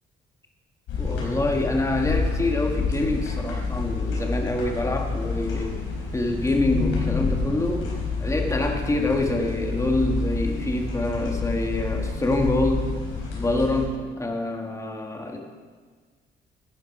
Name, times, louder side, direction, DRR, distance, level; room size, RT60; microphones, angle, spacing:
sound 1, 0.9-13.8, left 4 dB, 85° left, 3.9 m, -28 dB
voice 1, 1.0-5.8 6.1-7.9 8.2-12.9 13.3-15.4, left 2 dB, 15° left, 2 dB, 1.7 m, -26 dB
11.5 x 9.6 x 4.8 m, 1.5 s
cardioid pair, 90°, 20 cm